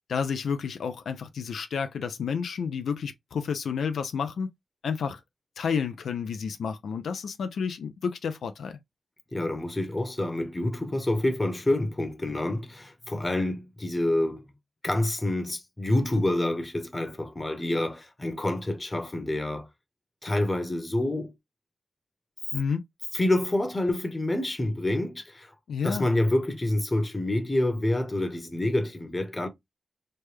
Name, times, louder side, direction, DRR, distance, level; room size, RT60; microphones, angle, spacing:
voice 1, 0.1-4.5 4.8-5.2 5.6-8.8 22.5-22.8 25.7-26.1, left 6 dB, 90° left, 0.3 m, -30 dB
voice 2, 9.3-14.5 14.8-19.7 20.2-21.3 23.1-25.5 25.8-29.5, left 1 dB, 25° left, 0.9 m, -27 dB
3.2 x 2.1 x 3.1 m
cardioid pair, 65°, 0 cm